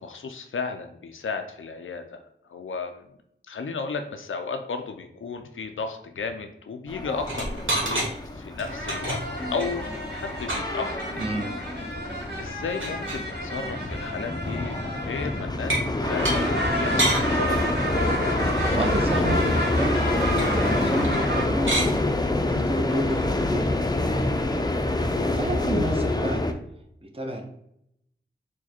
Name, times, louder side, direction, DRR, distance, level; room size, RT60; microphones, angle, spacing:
voice 1, 0.0-2.2 2.5-3.1 3.5-8.1 8.3-9.2 9.5-11.3 11.8-12.0 12.4-18.0, left 4 dB, 85° left, 6 dB, 0.4 m, -34 dB
sound 1, 6.9-26.5, left 2 dB, 20° left, 0.5 m, -27 dB
sound 2, 7.2-8.1 8.5-11.3 11.7-11.8 12.1-12.2 12.4-13.3 13.9-14.1 15.7-15.9 16.3-16.4 17.0-17.2 20.4-20.5 21.0-21.3 21.5-21.9 23.1-23.2, right 1 dB, 80° right, 1.2 m, -29 dB
sound 3, 8.7-15.6 16.0-21.4, equal, 55° right, 1.4 m, -31 dB
voice 2, 11.2-11.5 18.5-19.9 20.4-21.8 22.5-23.9 25.4-26.4 27.0-27.4, right 1 dB, 30° right, 3 dB, 0.7 m, -30 dB
4.7 x 2.2 x 4.2 m, 0.75 s
wide cardioid pair, 45°, 20 cm